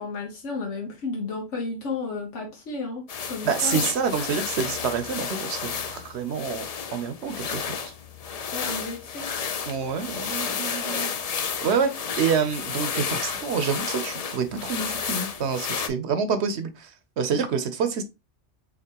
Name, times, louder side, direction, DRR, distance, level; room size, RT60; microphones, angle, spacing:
voice 1, 0.0-3.9 8.5-9.3, left 3 dB, 85° left, 1.4 m, -33 dB
sound 1, 3.1-15.9, left 6 dB, 55° left, 0.4 m, -32 dB
voice 2, 3.4-6.6 6.9-7.7 9.6-11.9 12.2-16.9 17.2-18.0, right 6 dB, 70° right, 0.9 m, -27 dB
5.8 x 2.9 x 2.9 m
omnidirectional pair, 1.2 m